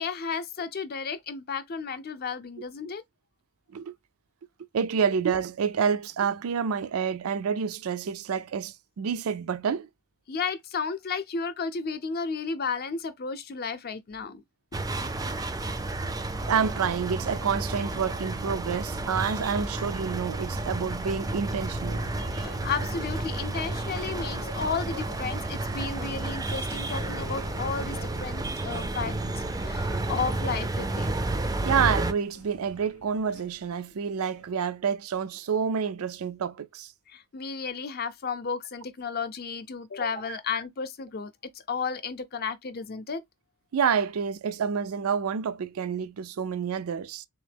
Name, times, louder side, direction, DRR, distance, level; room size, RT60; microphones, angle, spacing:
voice 1, 0.0-3.0 10.3-14.4 22.3-31.1 37.1-43.2, left 5 dB, 45° left, 0.6 m, -33 dB
voice 2, 4.7-9.9 16.5-22.0 31.6-36.9 40.3-40.4 43.7-47.3, right 6 dB, 80° right, 0.4 m, -28 dB
sound 1, 14.7-32.1, right 2 dB, 15° right, 0.4 m, -31 dB
sound 2, 19.9-34.5, left 5 dB, 85° left, 0.6 m, -49 dB
3.5 x 3.0 x 3.4 m
head